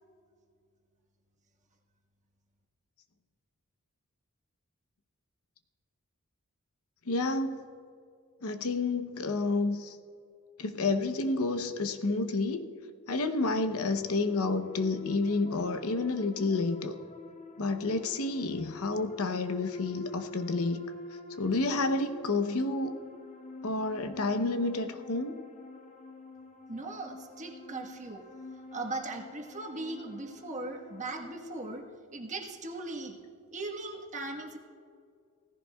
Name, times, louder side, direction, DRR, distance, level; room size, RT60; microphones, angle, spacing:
voice 1, 7.1-7.6 8.4-10.0 10.6-12.6 13.1-17.0 17.6-20.9 21.4-22.9 23.6-25.3, left 3 dB, 75° left, 8 dB, 0.8 m, -30 dB
sound 1, 13.7-31.8, left 2 dB, 35° left, 0.7 m, -47 dB
voice 2, 26.7-28.2 28.7-31.8 32.1-33.1 33.5-34.6, right 2 dB, 35° right, 2 dB, 1.3 m, -38 dB
17.5 x 15.0 x 2.3 m, 2.3 s
head